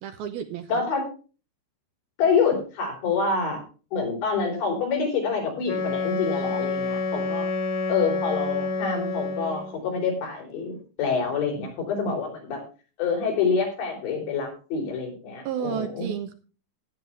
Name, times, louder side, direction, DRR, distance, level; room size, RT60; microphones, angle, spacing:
voice 1, 0.0-0.8 15.5-16.3, right 8 dB, 75° right, 7 dB, 2.5 m, -32 dB
voice 2, 0.7-1.0 2.2-3.6 3.9-7.5 7.9-12.6 13.0-16.1, left 5 dB, 80° left, 1 dB, 6.3 m, -26 dB
Wind instrument woodwind instrument, 5.6-9.8, left 3 dB, 60° left, 3.6 m, -28 dB
13.5 x 10.5 x 3.4 m, 0.35 s
omnidirectional pair, 5.1 m